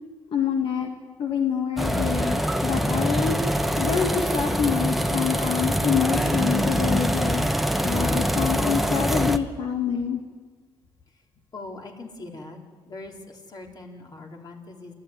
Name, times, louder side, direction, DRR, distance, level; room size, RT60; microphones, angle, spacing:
voice 1, 0.3-0.9 1.2-3.4 3.8-7.4 7.8-10.2, left 7 dB, 65° left, 2 dB, 2.0 m, -26 dB
sound 1, 1.8-9.4, equal, ahead, 1.3 m, -24 dB
voice 2, 11.5-12.6 12.9-14.9, left 2 dB, 45° left, 1 dB, 4.2 m, -41 dB
27.0 x 14.0 x 9.6 m, 1.5 s
cardioid pair, 80°, 10 cm